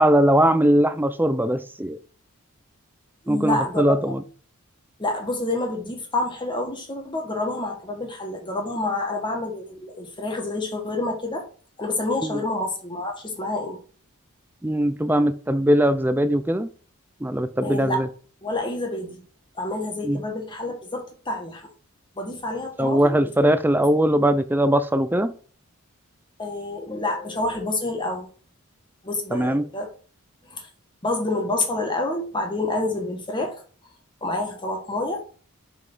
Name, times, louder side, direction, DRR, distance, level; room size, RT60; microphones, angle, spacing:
voice 1, 0.0-2.0 3.3-4.2 12.2-12.4 14.6-16.7 17.2-18.1 20.0-20.2 22.8-25.3 29.3-29.6, right 1 dB, 10° right, 0.6 m, -20 dB
voice 2, 3.3-4.0 5.0-11.4 11.8-13.8 17.6-18.0 18.4-19.2 19.6-21.6 22.2-23.2 26.4-28.3 29.0-29.9 30.5-30.7 31.0-33.6 34.2-35.2, left 2 dB, 20° left, 1.7 m, -28 dB
5.6 x 5.5 x 6.2 m
head